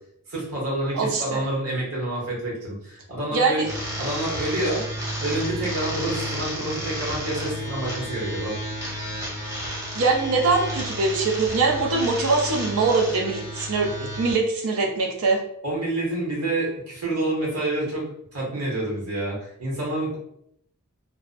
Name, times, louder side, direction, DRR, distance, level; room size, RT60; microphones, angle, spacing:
voice 1, 0.3-3.7 4.0-4.8 5.2-8.6 15.6-18.1 18.3-20.2, right 1 dB, 85° right, -3 dB, 1.0 m, -28 dB
voice 2, 0.9-1.4 3.3-3.7 9.5-9.6 9.9-15.4, right 4 dB, 65° right, 1 dB, 0.5 m, -23 dB
sound 1, 3.6-14.3, equal, 15° right, 0.5 m, -32 dB
2.5 x 2.0 x 2.4 m, 0.73 s
head